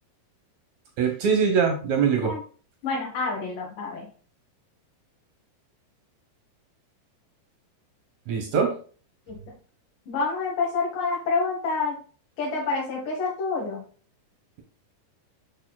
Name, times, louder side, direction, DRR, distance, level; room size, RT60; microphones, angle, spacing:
voice 1, 1.0-2.3 8.3-8.8, right 6 dB, 70° right, 3 dB, 2.1 m, -22 dB
voice 2, 2.8-4.1 9.3-9.4 10.1-12.0 12.4-13.8, left 4 dB, 85° left, -3 dB, 3.0 m, -28 dB
6.7 x 6.4 x 2.3 m, 0.41 s
omnidirectional pair, 3.7 m